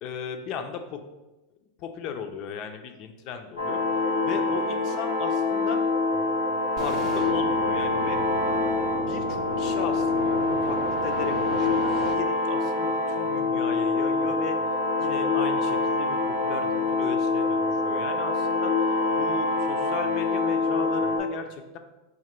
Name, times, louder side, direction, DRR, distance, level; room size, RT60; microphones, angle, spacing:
voice 1, 0.0-1.0 1.8-3.8 4.2-5.8 6.8-8.2 9.1-14.6 15.0-21.8, left 7 dB, 50° left, 6 dB, 0.5 m, -36 dB
sound 1, 3.6-21.2, left 3 dB, 85° left, 0.8 m, -25 dB
sound 2, 6.8-12.1, right 7 dB, 45° right, 0.4 m, -36 dB
3.8 x 2.9 x 4.3 m, 1.1 s
hypercardioid pair, 95°, 0 cm